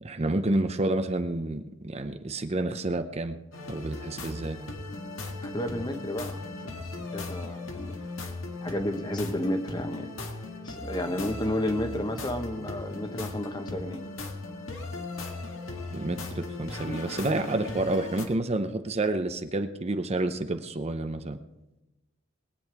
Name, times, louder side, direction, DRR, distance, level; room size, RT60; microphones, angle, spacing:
voice 1, 0.0-3.4 3.7-4.6 15.9-21.4, right 2 dB, 30° right, 8 dB, 0.7 m, -29 dB
sound 1, 3.5-18.3, left 2 dB, 85° left, 1.7 m, -38 dB
voice 2, 5.4-6.5 7.1-8.0 8.6-10.1 10.6-14.0, left 1 dB, 20° left, 7 dB, 1.0 m, -31 dB
21.0 x 8.7 x 4.8 m, 0.97 s
head